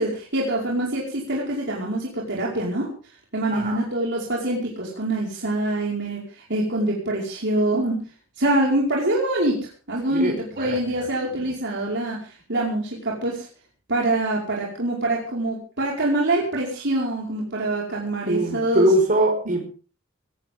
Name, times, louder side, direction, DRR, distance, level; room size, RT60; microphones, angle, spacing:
voice 1, 0.0-2.9 3.3-8.0 8.4-13.5 13.9-18.9, right 1 dB, 55° right, -3 dB, 5.2 m, -25 dB
voice 2, 10.1-11.1 18.3-19.6, right 1 dB, 40° right, 3 dB, 5.6 m, -22 dB
19.0 x 17.5 x 3.8 m, 0.37 s
head